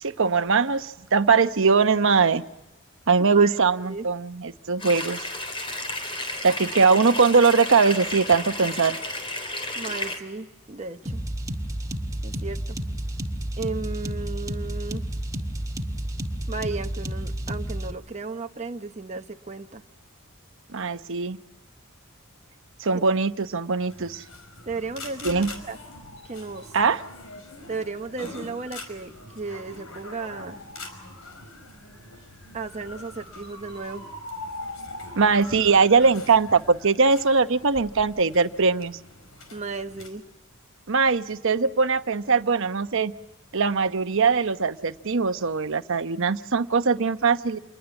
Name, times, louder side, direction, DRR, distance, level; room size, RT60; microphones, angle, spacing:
voice 1, 0.0-2.4 3.1-5.2 6.4-9.0 20.7-21.4 22.8-24.2 25.2-25.5 26.7-27.0 35.2-39.0 40.9-43.1 43.5-47.6, right 4 dB, 65° right, 10 dB, 1.0 m, -21 dB
sound 1, 4.8-10.2, left 2 dB, 25° left, 3.7 m, -32 dB
voice 2, 9.7-11.2 12.2-12.8 13.6-15.0 16.5-19.8 22.9-23.0 24.7-25.8 26.3-26.7 27.7-30.6 32.5-34.1 39.5-40.2, right 4 dB, 30° right, 5 dB, 0.9 m, -34 dB
sound 2, 11.1-17.9, right 1 dB, 15° right, 1.8 m, -31 dB
sound 3, 23.9-40.1, left 2 dB, 70° left, 5.3 m, -42 dB
28.0 x 21.0 x 7.1 m, 0.96 s
head